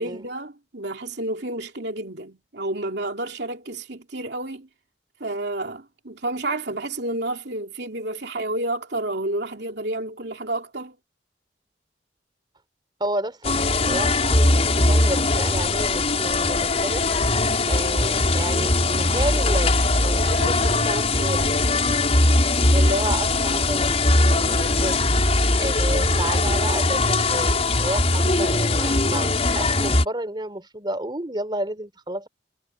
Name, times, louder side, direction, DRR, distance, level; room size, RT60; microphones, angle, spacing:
voice 1, 0.0-4.7 5.2-11.0 20.4-20.9, right 2 dB, 65° right, 3.0 m, -30 dB
voice 2, 13.0-21.6 22.7-24.0 24.3-25.0 25.6-27.5 27.8-32.3, right 1 dB, 25° right, 3.6 m, -31 dB
sound 1, 13.4-30.0, left 2 dB, 35° left, 5.5 m, -20 dB
head